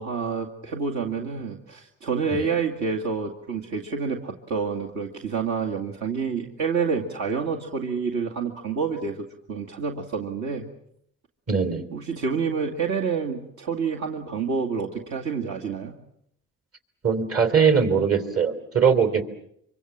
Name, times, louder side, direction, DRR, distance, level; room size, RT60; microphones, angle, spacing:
voice 1, 0.0-10.7 11.9-16.0, right 5 dB, 70° right, 0 dB, 2.3 m, -28 dB
voice 2, 11.5-11.8 17.0-19.2, right 6 dB, 50° right, 9 dB, 3.6 m, -21 dB
25.5 x 24.5 x 7.4 m, 0.74 s
cardioid pair, 90°, 30 cm